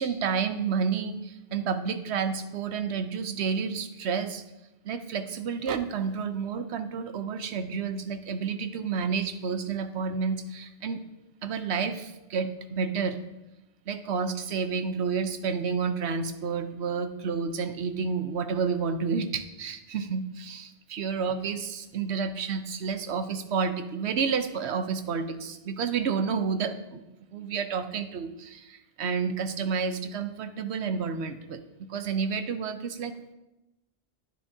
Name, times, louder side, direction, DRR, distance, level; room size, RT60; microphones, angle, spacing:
voice 1, 0.0-4.4 4.8-11.0 11.4-13.2 13.9-27.0 27.3-33.1, right 5 dB, 80° right, 10 dB, 1.0 m, -30 dB
10.5 x 9.7 x 2.7 m, 0.97 s
omnidirectional pair, 1.1 m